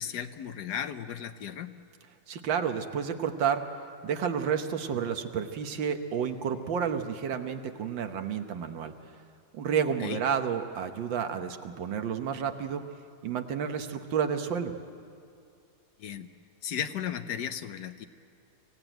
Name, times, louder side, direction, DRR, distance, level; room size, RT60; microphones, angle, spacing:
voice 1, 0.0-1.7 10.0-10.2 16.0-16.3 16.6-18.1, left 9 dB, 65° left, 10 dB, 1.3 m, -35 dB
voice 2, 2.3-3.6 4.0-8.9 9.5-12.8 13.2-14.8, right 7 dB, 85° right, 7 dB, 1.8 m, -30 dB
26.0 x 16.5 x 9.1 m, 2.4 s
omnidirectional pair, 2.0 m